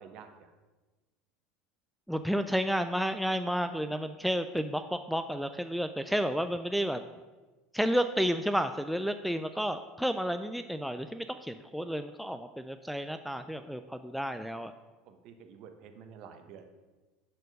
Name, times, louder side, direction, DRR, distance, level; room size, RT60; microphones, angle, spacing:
voice 1, 0.0-0.5 15.0-16.7, right 7 dB, 55° right, 7 dB, 1.1 m, -50 dB
voice 2, 2.1-7.0 7.7-14.7, equal, ahead, 8 dB, 0.3 m, -31 dB
10.5 x 4.5 x 5.3 m, 1.2 s
supercardioid pair, 125°, 0 cm